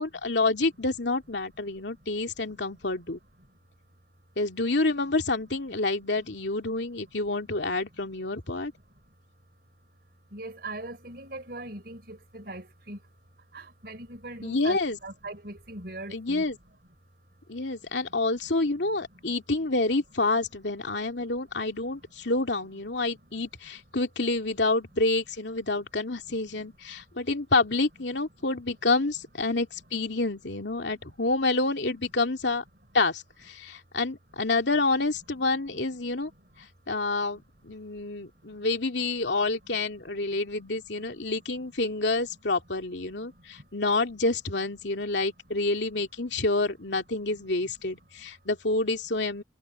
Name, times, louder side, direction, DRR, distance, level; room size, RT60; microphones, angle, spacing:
voice 1, 0.0-3.2 4.4-8.7 14.4-15.0 16.1-16.6 17.5-32.6 32.9-36.3 36.9-49.4, left 3 dB, 75° left, 2.6 m, -28 dB
voice 2, 2.5-3.6 6.7-6.8 7.5-7.6 7.9-9.1 10.3-13.1 13.4-16.5 17.8-18.0 18.3-19.4 21.1-22.1 23.2-23.5 26.2-27.0 28.4-28.5 30.8-31.1 35.3-35.4 36.0-36.7 37.6-37.7 38.0-38.7 39.2-39.3 40.3-40.4 41.0-41.7 43.2-43.7 46.3-46.4 47.6-47.7 48.2-48.3, right 2 dB, 55° right, 5.0 m, -45 dB
head